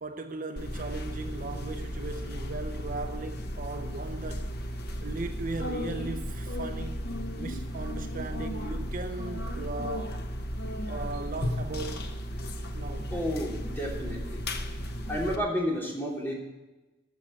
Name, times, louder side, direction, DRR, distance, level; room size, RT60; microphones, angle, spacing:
voice 1, 0.0-4.5 5.0-7.0 7.4-10.2 10.9-12.0 12.7-13.1, right 3 dB, 45° right, 0.6 m, -38 dB
sound 1, 0.6-15.4, equal, 60° left, 1.2 m, -35 dB
voice 2, 13.1-14.4 15.1-16.3, equal, 10° left, 3.2 m, -31 dB
13.5 x 6.4 x 8.8 m
head